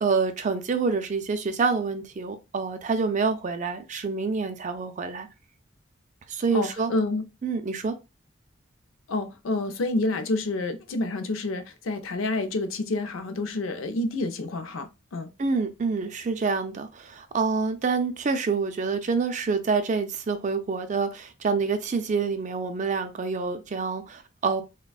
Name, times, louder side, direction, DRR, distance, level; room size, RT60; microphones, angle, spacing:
voice 1, 0.0-5.3 6.3-6.9 7.4-8.0 15.4-24.6, right 4 dB, 40° right, 0.4 m, -27 dB
voice 2, 6.5-7.2 9.1-15.3, left 2 dB, 85° left, 0.5 m, -28 dB
3.3 x 2.1 x 2.3 m
head